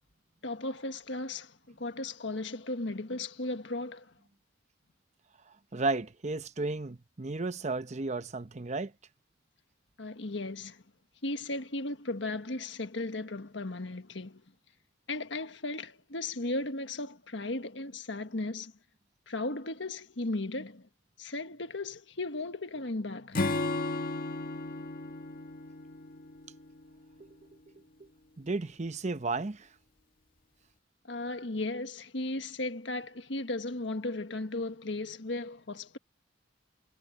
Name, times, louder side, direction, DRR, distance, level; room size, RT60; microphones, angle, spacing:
voice 1, 0.4-4.1 10.0-10.8 11.2-14.4 15.1-18.7 19.3-20.9 21.2-23.4 31.1-36.0, left 2 dB, 75° left, 1.6 m, -36 dB
voice 2, 5.7-8.9 27.2-27.3 28.4-29.7, right 3 dB, 40° right, 0.8 m, -33 dB
Acoustic guitar / Strum, 23.3-26.8, left 2 dB, 50° left, 2.1 m, -34 dB
head